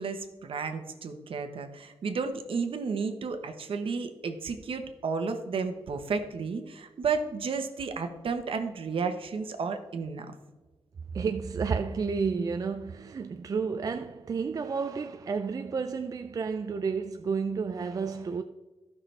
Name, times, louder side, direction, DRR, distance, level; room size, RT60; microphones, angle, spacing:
voice 1, 0.0-10.3, right 5 dB, 60° right, 1.0 m, -32 dB
voice 2, 11.1-18.4, right 5 dB, 35° right, 0.4 m, -31 dB
15.0 x 6.0 x 3.3 m
wide cardioid pair, 165°, 10 cm